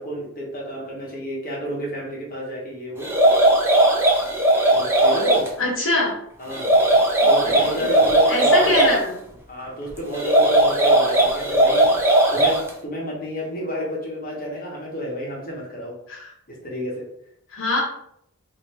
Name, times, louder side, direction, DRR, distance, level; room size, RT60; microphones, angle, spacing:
voice 1, 0.0-3.1 4.7-5.5 6.4-6.7 7.2-8.9 9.5-11.9 12.3-15.9 16.5-17.0, equal, 40° left, -3 dB, 1.1 m, -30 dB
sound 1, 3.0-5.5 6.5-9.0 10.1-12.7, right 1 dB, 10° right, 0.5 m, -17 dB
voice 2, 5.6-6.1 7.4-7.9 8.3-9.1 16.1-16.3 17.5-17.8, left 2 dB, 65° left, -2 dB, 1.2 m, -23 dB
3.2 x 2.8 x 2.9 m, 0.70 s
head